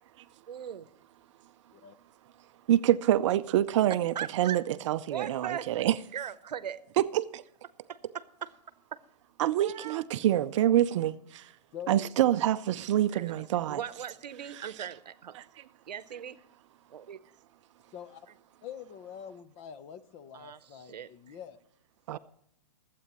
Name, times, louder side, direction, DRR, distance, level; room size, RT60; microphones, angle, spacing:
voice 1, 0.5-0.9 4.1-4.6 5.1-5.7 6.1-6.8 7.9-8.5 9.6-10.0 13.1-15.3 15.9-16.4 16.9-17.2 20.3-21.1 22.1-22.2, right 8 dB, 75° right, 0.8 m, -39 dB
voice 2, 2.7-5.9 7.0-7.4 9.4-11.5 11.9-13.8 15.4-15.5 22.1-22.2, right 12 dB, 45° right, 0.5 m, -26 dB
voice 3, 11.7-12.1 17.9-18.2 18.6-21.6, left 8 dB, 30° left, 0.7 m, -45 dB
25.0 x 8.4 x 3.0 m
hypercardioid pair, 130°, 21 cm